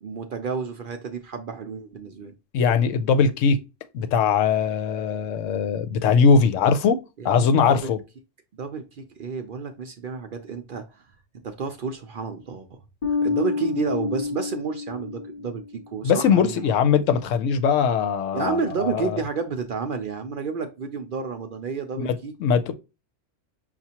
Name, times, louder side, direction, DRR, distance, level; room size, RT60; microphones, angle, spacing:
voice 1, 0.0-2.3 7.2-8.0 8.5-11.1 11.4-12.8 13.1-16.7 18.3-22.3, right 5 dB, 60° right, 0.6 m, -31 dB
voice 2, 2.5-3.6 3.9-8.0 16.0-19.2 22.0-22.1 22.4-22.7, left 6 dB, 85° left, 1.0 m, -21 dB
Bass guitar, 13.0-15.7, left 4 dB, 40° left, 0.6 m, -28 dB
5.8 x 2.4 x 2.8 m
omnidirectional pair, 1.3 m